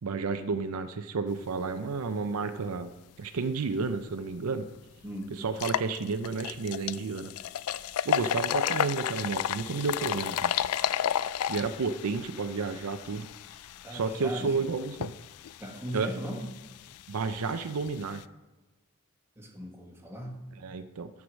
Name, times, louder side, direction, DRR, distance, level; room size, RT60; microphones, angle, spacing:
voice 1, 0.0-2.9 3.2-4.7 5.3-7.3 8.0-10.5 11.5-13.3 13.9-15.1 15.9-16.1 17.1-18.2 20.5-21.1, right 4 dB, 75° right, 10 dB, 0.5 m, -31 dB
sound 1, 4.2-4.3 4.8-4.9 5.5-18.2, left 9 dB, 80° left, 0.4 m, -33 dB
voice 2, 5.0-5.4 13.8-14.5 15.6-16.5 19.4-20.4, equal, 10° right, 0 dB, 1.6 m, -38 dB
13.5 x 4.8 x 6.2 m, 1.1 s
head